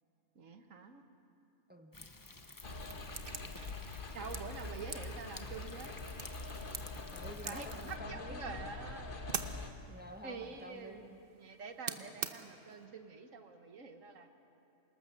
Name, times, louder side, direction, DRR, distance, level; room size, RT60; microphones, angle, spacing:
voice 1, 0.3-1.0 3.6-3.7 4.1-5.9 7.4-9.5 10.2-14.3, right 4 dB, 80° right, 6 dB, 1.7 m, -47 dB
voice 2, 1.7-2.1 7.1-8.7 9.9-11.2, left 1 dB, 10° right, 5 dB, 0.9 m, -50 dB
Thunder, 1.9-8.0, left 2 dB, 20° left, 0.8 m, -53 dB
sound 1, 2.3-12.9, right 6 dB, 50° right, 1.1 m, -47 dB
sound 2, 2.6-9.7, left 3 dB, 45° left, 1.4 m, -44 dB
27.5 x 19.5 x 6.9 m, 2.7 s
omnidirectional pair, 1.3 m